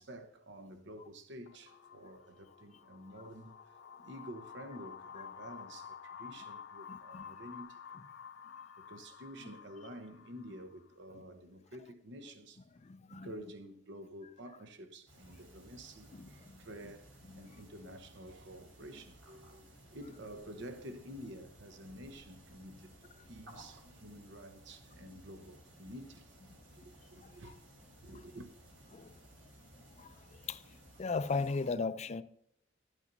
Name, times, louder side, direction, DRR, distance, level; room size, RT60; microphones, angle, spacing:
voice 1, 0.0-7.8 8.5-12.6 13.1-19.6 19.9-27.6 27.9-28.5, equal, 65° right, 1.0 m, -50 dB
sound 1, 1.5-10.9, left 7 dB, 70° left, 0.9 m, -51 dB
voice 2, 6.9-7.2 12.8-13.3 16.5-16.6 27.2-27.3 28.9-29.1 30.0-30.1 30.5-30.6 31.0-32.2, left 4 dB, 35° left, 0.4 m, -36 dB
sound 2, 15.1-31.7, equal, 85° right, 4.1 m, -58 dB
12.0 x 8.4 x 2.7 m
head